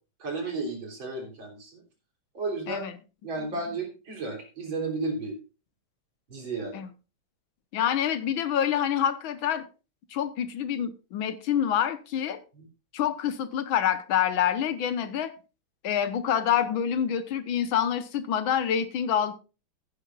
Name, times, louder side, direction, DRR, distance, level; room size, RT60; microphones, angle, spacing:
voice 1, 0.2-1.8 2.3-2.8 3.2-5.4 6.3-6.8, right 3 dB, 75° right, 4.2 m, -33 dB
voice 2, 7.7-9.7 10.1-12.4 12.9-15.3 15.8-19.3, left 9 dB, 85° left, 1.8 m, -27 dB
15.0 x 9.8 x 2.4 m
omnidirectional pair, 2.1 m